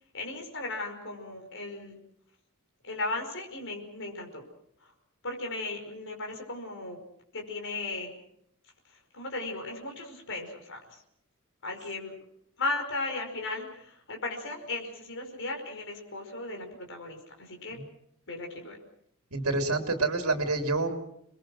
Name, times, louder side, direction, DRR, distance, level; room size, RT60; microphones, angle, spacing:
voice 1, 0.1-2.0 2.8-4.4 5.2-7.0 7.3-8.2 9.1-10.8 11.6-12.1 12.6-17.8 18.3-18.8, left 2 dB, 60° left, 3 dB, 5.3 m, -36 dB
voice 2, 19.3-20.9, right 3 dB, 75° right, 5 dB, 3.0 m, -27 dB
28.5 x 21.0 x 6.3 m, 0.72 s
head